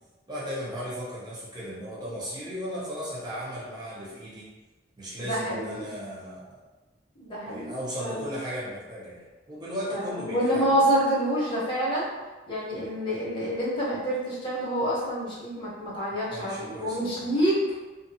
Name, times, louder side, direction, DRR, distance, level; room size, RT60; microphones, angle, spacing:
voice 1, 0.3-4.5 5.0-6.7 7.4-10.7 16.3-17.4, equal, 25° right, -8 dB, 0.8 m, -36 dB
voice 2, 5.2-5.9 7.2-8.2 9.9-12.1 12.5-17.6, equal, 30° left, -7 dB, 0.8 m, -27 dB
2.6 x 2.5 x 2.6 m, 1.2 s
head